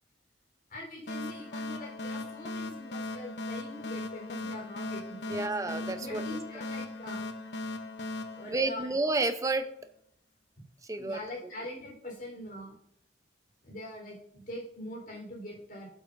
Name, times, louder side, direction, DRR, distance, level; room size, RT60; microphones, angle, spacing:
voice 1, 0.7-5.5 6.0-7.2 8.3-8.9 11.0-12.8 13.6-15.9, left 1 dB, 50° left, -1 dB, 4.2 m, -43 dB
sound 1, 1.1-9.4, left 2 dB, 70° left, 0.9 m, -38 dB
voice 2, 5.3-6.2 8.5-9.6 10.9-11.2, right 3 dB, 20° right, 8 dB, 0.7 m, -30 dB
11.5 x 7.5 x 2.7 m, 0.68 s
head